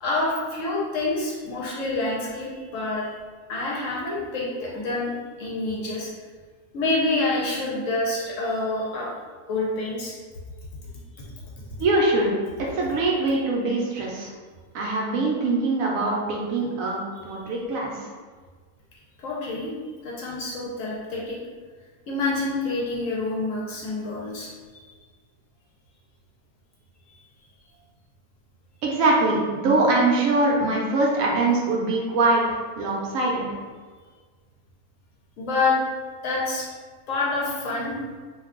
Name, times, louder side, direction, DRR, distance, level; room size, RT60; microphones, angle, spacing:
voice 1, 0.0-3.2 3.5-5.1 5.4-6.1 6.7-9.1 9.5-10.1 11.2-11.3 19.2-19.7 20.0-21.4 22.1-24.5 24.8-24.9 35.4-35.8 36.2-36.7 37.1-37.9, left 2 dB, 65° left, -4 dB, 0.9 m, -27 dB
voice 2, 11.8-12.3 12.7-14.3 14.7-17.9 28.8-33.5, right 2 dB, 70° right, -2 dB, 0.9 m, -23 dB
2.5 x 2.3 x 3.6 m, 1.5 s
omnidirectional pair, 1.6 m